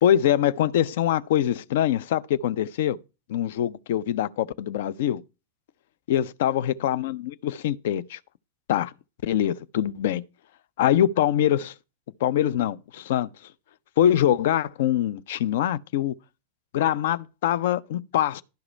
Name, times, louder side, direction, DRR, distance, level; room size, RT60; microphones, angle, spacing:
voice 1, 0.0-3.0 3.3-5.2 6.1-8.2 8.7-8.9 9.2-10.2 10.8-11.7 12.2-13.3 14.0-16.1 16.7-18.4, left 11 dB, 55° left, 0.4 m, -23 dB
11.5 x 4.8 x 5.4 m
figure-of-eight pair, 90°, 0 cm